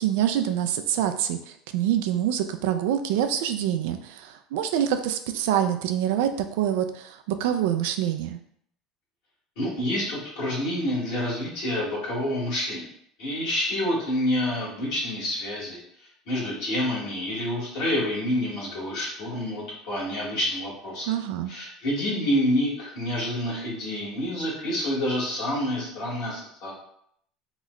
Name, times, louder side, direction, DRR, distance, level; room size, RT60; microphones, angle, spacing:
voice 1, 0.0-8.4 21.1-21.5, right 10 dB, 75° right, 8 dB, 0.3 m, -26 dB
voice 2, 9.6-12.9 13.2-15.8 16.3-21.1 21.5-26.7, left 1 dB, 75° left, -6 dB, 1.4 m, -28 dB
2.9 x 2.0 x 3.6 m, 0.67 s
hypercardioid pair, 80°, 0 cm